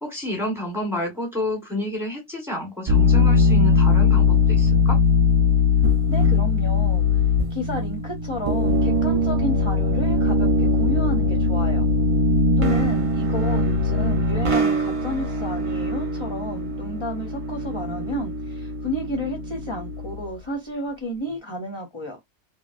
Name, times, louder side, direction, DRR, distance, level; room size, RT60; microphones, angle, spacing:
voice 1, 0.0-5.0, left 1 dB, ahead, 1.1 m, -29 dB
sound 1, 2.9-20.3, left 3 dB, 35° right, 0.6 m, -21 dB
voice 2, 6.1-7.0 7.5-11.9 12.6-22.2, equal, 30° left, 0.6 m, -31 dB
3.1 x 2.3 x 2.5 m
omnidirectional pair, 1.3 m